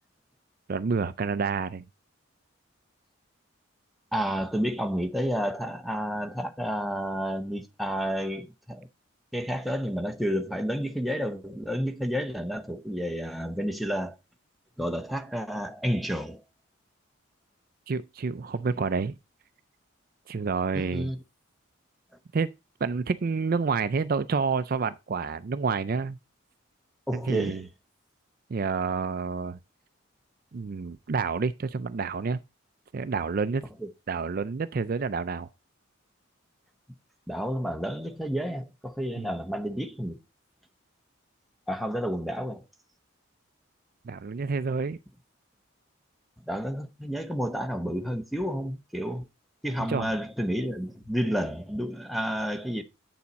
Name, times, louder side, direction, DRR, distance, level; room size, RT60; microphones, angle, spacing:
voice 1, 0.7-1.8 17.9-19.1 20.3-21.1 22.3-22.5 22.8-26.2 27.1-27.6 28.5-29.6 30.5-32.4 32.9-33.7 34.1-35.5 39.2-39.3 44.0-45.0 49.9-50.1, right 5 dB, 45° right, 0.4 m, -29 dB
voice 2, 4.1-8.9 9.3-14.1 14.8-16.4 20.7-21.2 27.1-27.7 33.8-33.9 37.3-40.2 41.7-42.6 46.5-49.2 49.6-52.8, equal, ahead, 0.8 m, -30 dB
8.4 x 7.1 x 4.1 m
head